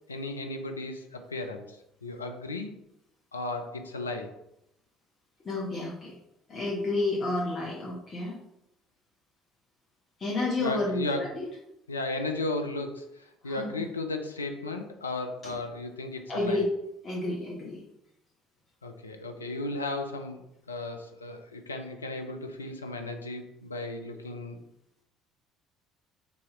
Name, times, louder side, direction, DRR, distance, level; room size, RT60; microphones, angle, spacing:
voice 1, 0.1-2.7 3.3-4.3 10.6-11.3 11.9-16.6 18.8-24.6, left 2 dB, 85° left, 5 dB, 0.3 m, -35 dB
voice 2, 5.4-6.1 6.5-8.4 10.2-11.5 13.4-13.9 15.4-15.6 16.3-16.7 17.0-17.8, left 2 dB, 35° left, -5 dB, 0.9 m, -31 dB
3.0 x 2.8 x 3.6 m, 0.82 s
figure-of-eight pair, 55°, 0 cm